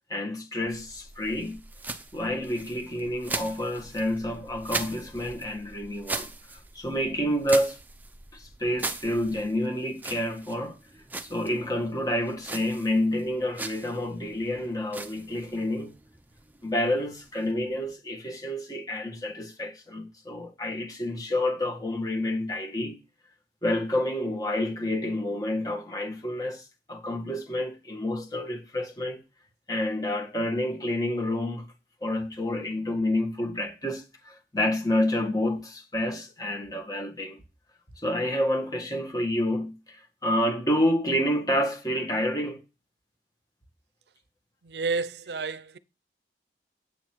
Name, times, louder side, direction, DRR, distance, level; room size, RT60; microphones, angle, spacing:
voice 1, 0.1-1.6 2.1-7.8 8.3-10.8 11.2-15.9 16.6-22.9 23.6-26.6 26.9-29.2 29.7-31.7 32.0-37.4 38.0-42.6, left 1 dB, 20° left, 1.6 m, -29 dB
sound 1, 0.7-17.9, right 3 dB, 10° right, 0.6 m, -40 dB
voice 2, 44.6-45.8, right 4 dB, 70° right, 0.6 m, -30 dB
9.1 x 8.2 x 4.6 m
head